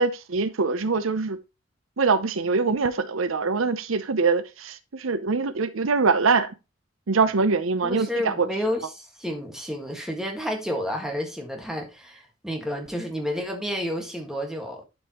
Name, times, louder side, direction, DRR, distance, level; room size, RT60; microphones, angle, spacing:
voice 1, 0.0-1.4 2.0-6.5 7.1-8.5, right 4 dB, 80° right, 0.7 m, -23 dB
voice 2, 7.8-14.8, equal, 5° right, 1.6 m, -30 dB
11.0 x 5.4 x 2.9 m
head